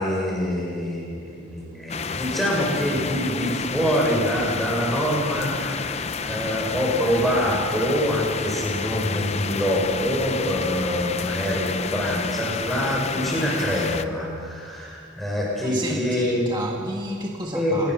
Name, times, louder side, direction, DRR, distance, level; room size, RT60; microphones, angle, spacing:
voice 1, 0.0-16.4 17.5-17.9, equal, ahead, -4 dB, 6.4 m, -25 dB
sound 1, 1.9-14.0, left 5 dB, 30° left, 0.6 m, -30 dB
voice 2, 15.6-17.9, right 1 dB, 20° right, 0 dB, 1.5 m, -31 dB
26.5 x 20.0 x 6.2 m, 2.4 s
head